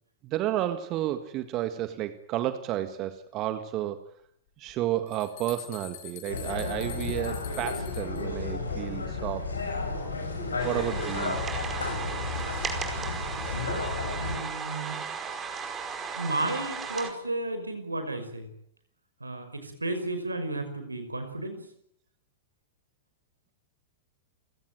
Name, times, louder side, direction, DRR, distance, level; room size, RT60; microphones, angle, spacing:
voice 1, 0.2-4.0 4.6-9.5 10.6-11.4 13.1-13.3 16.1-16.2, right 13 dB, 35° right, 10 dB, 1.8 m, -32 dB
sound 1, 4.7-8.2, left 10 dB, 45° left, 7.6 m, -45 dB
sound 2, 6.3-14.4, left 3 dB, 75° left, 6.4 m, -32 dB
sound 3, 10.6-17.1, right 5 dB, 20° right, 5.0 m, -35 dB
voice 2, 14.2-15.0 16.1-18.5 19.2-21.7, right 2 dB, 80° right, 9 dB, 5.6 m, -33 dB
29.5 x 17.0 x 9.1 m, 0.72 s
figure-of-eight pair, 95°, 0 cm